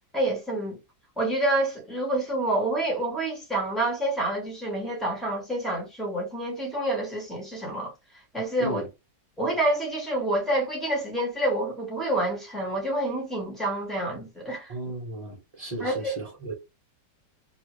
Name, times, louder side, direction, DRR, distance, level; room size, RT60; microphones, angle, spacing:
voice 1, 0.1-0.8 1.2-7.9 8.3-8.8 9.4-14.7 15.8-16.1, right 1 dB, ahead, 1.0 m, -28 dB
voice 2, 14.7-16.5, right 1 dB, 35° right, 0.6 m, -35 dB
3.0 x 2.4 x 3.1 m
omnidirectional pair, 1.9 m